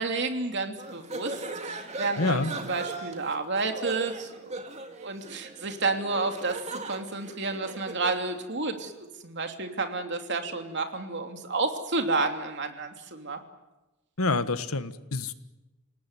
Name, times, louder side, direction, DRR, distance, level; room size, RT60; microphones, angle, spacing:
voice 1, 0.0-4.6 5.0-13.4, right 3 dB, 55° right, 5 dB, 2.9 m, -31 dB
sound 1, 0.8-8.2, right 2 dB, 30° right, 2.5 m, -39 dB
voice 2, 2.2-2.5 14.2-15.3, left 3 dB, 75° left, 11 dB, 1.5 m, -27 dB
29.0 x 18.5 x 9.7 m, 1.1 s
head